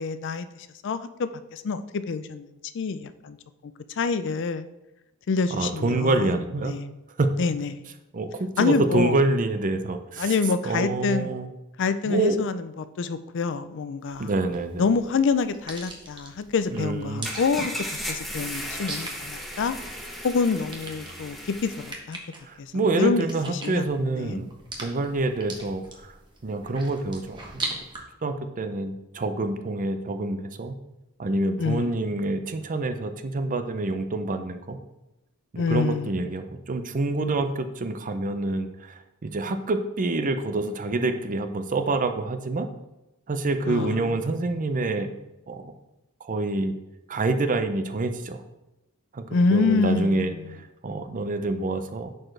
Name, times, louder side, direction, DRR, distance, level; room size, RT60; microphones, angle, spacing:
voice 1, 0.0-3.4 4.0-4.7 5.3-6.4 6.6-6.9 7.4-7.8 8.6-9.1 10.2-11.3 11.8-12.6 13.0-14.3 14.8-17.7 18.1-19.8 20.2-22.2 22.6-23.3 23.6-23.9 24.2-24.4 31.6-31.9 35.6-36.2 43.7-44.1 49.3-50.5, left 4 dB, 55° left, 12 dB, 0.4 m, -26 dB
voice 2, 5.5-6.7 7.2-7.4 8.1-10.4 10.6-11.5 12.0-12.5 14.2-14.8 16.7-17.3 22.4-24.5 24.8-26.1 26.4-27.6 28.2-30.8 31.2-34.8 35.5-42.7 43.3-45.1 45.5-45.6 46.2-46.7 47.1-48.4 49.1-49.2 49.5-52.1, right 2 dB, 40° right, 8 dB, 0.5 m, -27 dB
sound 1, 14.0-28.0, right 2 dB, 20° right, 1.1 m, -41 dB
sound 2, 17.2-21.9, equal, ahead, 0.9 m, -36 dB
10.5 x 4.4 x 3.3 m, 0.94 s
head